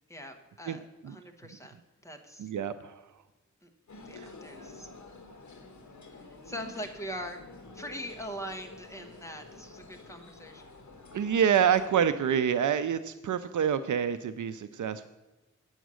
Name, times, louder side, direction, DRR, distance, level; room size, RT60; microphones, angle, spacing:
voice 1, 0.1-1.8 2.0-2.5 3.6-3.7 4.0-4.9 6.0-7.4 7.7-10.7, equal, 10° left, 4 dB, 1.1 m, -42 dB
voice 2, 0.7-1.2 2.4-3.1 4.2-4.3 11.1-15.1, right 8 dB, 75° right, 11 dB, 0.5 m, -27 dB
sound 1, 3.9-11.9, left 3 dB, 70° left, 1.3 m, -49 dB
9.1 x 7.2 x 6.2 m, 1.1 s
wide cardioid pair, 135°, 31 cm